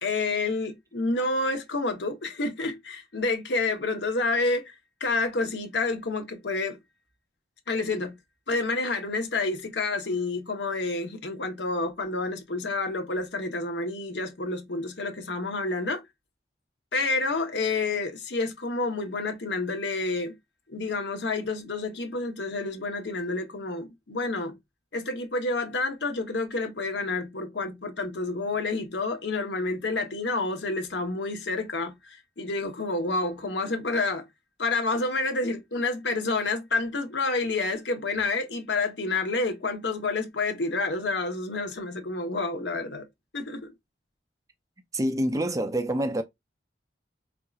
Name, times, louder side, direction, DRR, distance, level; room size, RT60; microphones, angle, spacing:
voice 1, 0.0-4.7 5.0-6.8 7.7-8.2 8.5-16.0 16.9-20.4 20.7-24.6 24.9-34.2 34.6-43.1 43.3-43.7, left 3 dB, 80° left, 0.9 m, -29 dB
voice 2, 44.9-46.2, right 1 dB, 20° right, 0.5 m, -26 dB
4.4 x 2.7 x 2.4 m
head